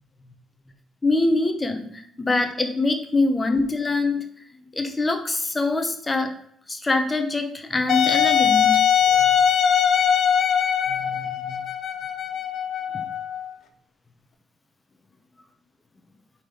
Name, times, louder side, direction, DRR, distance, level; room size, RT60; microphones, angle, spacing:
voice 1, 1.0-4.2 4.7-6.3 6.7-8.8 9.1-9.3 10.9-11.6, left 2 dB, 20° left, 6 dB, 0.9 m, -24 dB
Wind instrument woodwind instrument, 7.9-13.5, left 8 dB, 65° left, 0.8 m, -21 dB
5.6 x 4.2 x 5.0 m, 0.64 s
cardioid pair, 90°, 0 cm